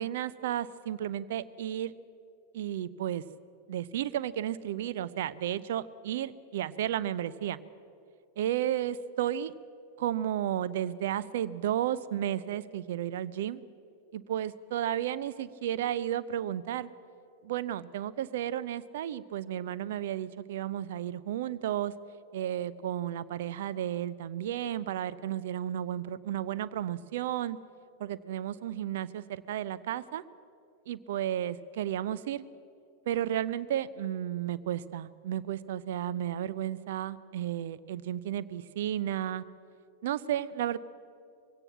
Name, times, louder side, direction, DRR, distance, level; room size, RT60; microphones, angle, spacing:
voice 1, 0.0-1.9 2.5-3.2 3.7-7.6 8.4-9.5 10.0-13.6 14.1-16.9 17.4-21.9 22.3-27.6 28.0-30.2 30.9-32.4 33.1-39.4 40.0-40.8, right 11 dB, 55° right, 17 dB, 0.6 m, -33 dB
21.5 x 17.0 x 7.4 m, 2.5 s
figure-of-eight pair, 90°, 0 cm